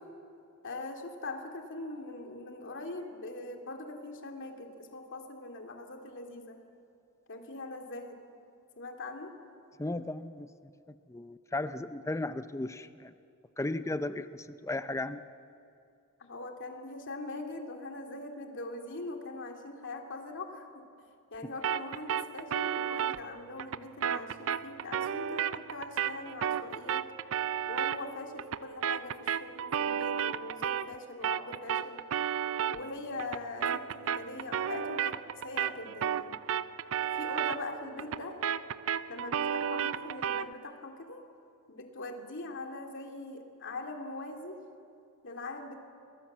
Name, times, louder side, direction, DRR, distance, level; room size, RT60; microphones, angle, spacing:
voice 1, 0.6-6.6 7.3-8.2 8.8-9.3 16.2-20.8 21.3-27.1 27.7-32.0 32.7-36.4 37.0-38.4 39.1-41.2 41.7-44.6 45.2-45.8, left 2 dB, 60° left, 3 dB, 2.7 m, -42 dB
voice 2, 9.8-10.5 10.9-13.1 13.6-15.2, left 2 dB, 15° left, 11 dB, 0.6 m, -35 dB
sound 1, 21.6-31.0 31.2-40.5, right 8 dB, 65° right, 0.5 m, -33 dB
29.0 x 21.0 x 7.4 m, 2.6 s
head